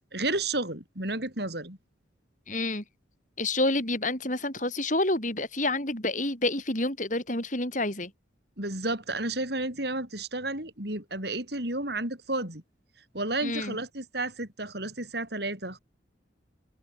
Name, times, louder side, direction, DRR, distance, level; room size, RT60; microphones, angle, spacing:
voice 1, 0.1-1.8 8.6-12.6 13.1-15.8, right 2 dB, 55° right, 7.6 m, -32 dB
voice 2, 2.5-2.8 3.4-8.1 13.4-13.8, left 2 dB, 40° left, 7.2 m, -28 dB
head